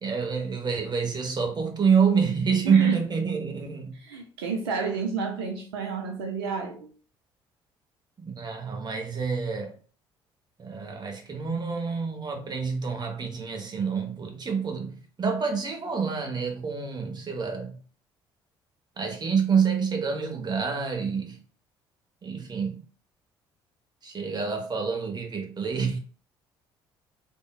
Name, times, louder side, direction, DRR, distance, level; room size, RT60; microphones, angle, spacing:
voice 1, 0.0-4.0 8.2-9.8 10.6-17.8 19.0-21.4 22.2-22.8 24.0-26.0, right 6 dB, 35° right, 0.8 m, -27 dB
voice 2, 3.9-6.9, right 4 dB, 80° right, 0.4 m, -31 dB
3.5 x 2.1 x 2.2 m
hypercardioid pair, 50°, 13 cm